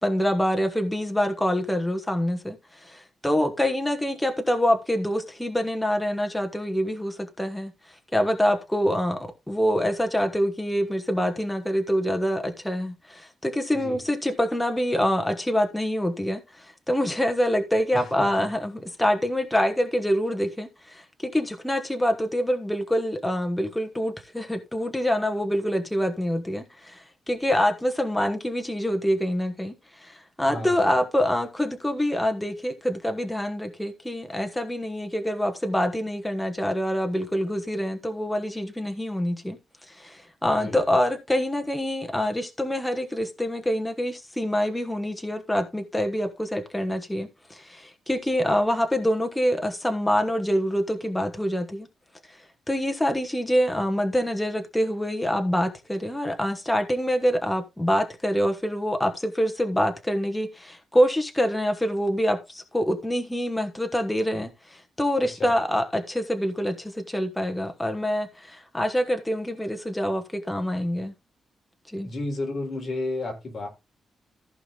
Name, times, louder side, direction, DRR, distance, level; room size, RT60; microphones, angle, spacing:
voice 1, 0.0-7.7 8.1-9.2 9.5-39.6 39.9-51.9 52.3-52.4 52.7-71.1 71.9-72.1, equal, 5° left, 1.3 m, -26 dB
voice 2, 17.9-18.3 30.5-30.9 40.5-40.8 65.4-65.5 72.0-73.7, left 2 dB, 40° left, 3.9 m, -32 dB
15.0 x 5.0 x 3.9 m
wide cardioid pair, 160°, 0 cm